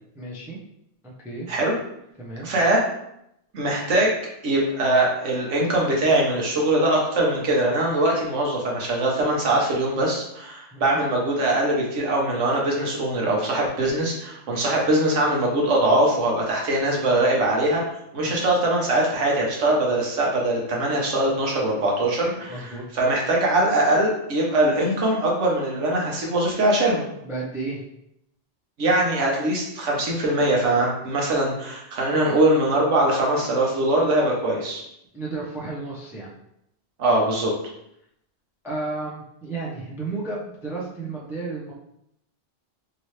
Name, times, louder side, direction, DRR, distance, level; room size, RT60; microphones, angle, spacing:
voice 1, 0.1-0.6 1.0-1.5 2.2-2.5 10.7-11.0 18.2-18.4 22.5-23.0 27.2-27.8 35.1-36.3 38.6-41.7, right 3 dB, 5° right, -5 dB, 0.4 m, -33 dB
voice 2, 2.4-2.8 3.5-4.2 4.4-17.8 18.1-27.0 28.8-34.8 37.0-37.5, right 1 dB, 85° right, -2 dB, 1.2 m, -22 dB
3.0 x 2.8 x 3.1 m, 0.78 s
omnidirectional pair, 1.2 m